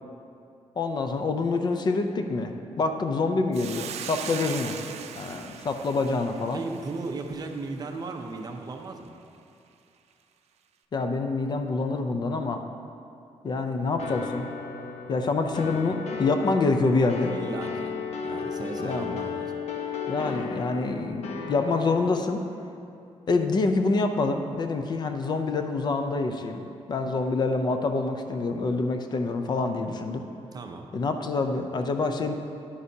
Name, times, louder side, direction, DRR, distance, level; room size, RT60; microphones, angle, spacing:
voice 1, 0.8-4.8 5.2-6.6 10.9-12.6 13.4-14.5 15.1-17.3 18.8-19.2 20.1-22.4 23.3-26.6 26.9-30.3 30.9-32.4, left 3 dB, 40° left, 6 dB, 0.5 m, -26 dB
Hiss, 3.5-8.0, right 8 dB, 80° right, 0.4 m, -40 dB
voice 2, 6.5-9.1 17.3-17.9 18.2-19.5 30.5-30.9, right 3 dB, 35° right, 4 dB, 0.6 m, -36 dB
sound 1, 14.0-22.3, left 5 dB, 75° left, 0.8 m, -34 dB
10.0 x 9.5 x 2.8 m, 2.7 s
wide cardioid pair, 160°, 11 cm